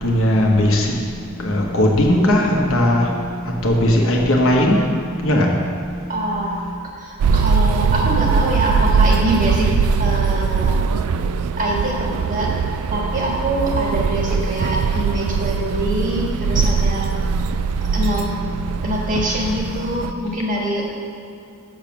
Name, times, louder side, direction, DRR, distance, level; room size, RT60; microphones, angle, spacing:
voice 1, 0.0-0.9 1.4-3.1 3.6-4.8 5.2-5.5, left 1 dB, 65° left, -1 dB, 1.2 m, -17 dB
voice 2, 6.1-10.7 11.6-12.5 12.9-17.1 17.9-18.3 18.8-20.9, right 1 dB, 40° right, -2 dB, 1.5 m, -24 dB
sound 1, 7.2-20.1, right 5 dB, 85° right, 0.3 m, -21 dB
7.0 x 6.7 x 6.0 m, 2.4 s
head